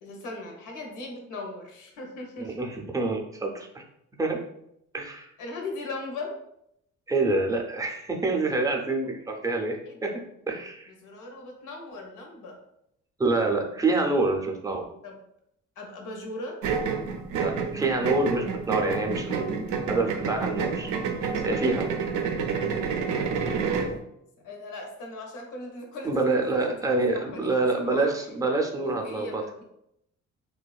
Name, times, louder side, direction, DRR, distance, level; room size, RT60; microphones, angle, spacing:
voice 1, 0.0-2.7 5.4-6.4 9.8-10.1 11.0-12.6 15.0-15.2 15.8-16.6 24.4-28.2 28.8-29.6, left 2 dB, 90° left, 2 dB, 0.7 m, -39 dB
voice 2, 2.4-3.8 4.2-4.4 4.9-5.3 7.1-10.9 13.2-14.8 17.3-20.9 21.4-21.9 26.1-29.4, right 3 dB, 10° right, 1 dB, 0.4 m, -27 dB
sound 1, 16.6-24.0, right 5 dB, 80° right, 0.5 m, -29 dB
2.9 x 2.2 x 2.3 m, 0.78 s
cardioid pair, 90°, 30 cm